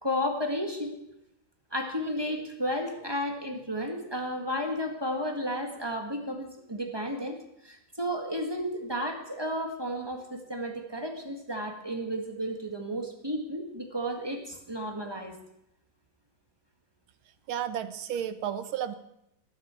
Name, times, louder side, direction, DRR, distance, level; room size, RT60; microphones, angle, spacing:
voice 1, 0.0-1.0 1.7-7.3 7.6-15.3, equal, 15° right, 3 dB, 1.6 m, -33 dB
voice 2, 17.5-18.9, right 9 dB, 85° right, 11 dB, 1.8 m, -32 dB
19.5 x 12.5 x 4.5 m, 0.81 s
omnidirectional pair, 2.2 m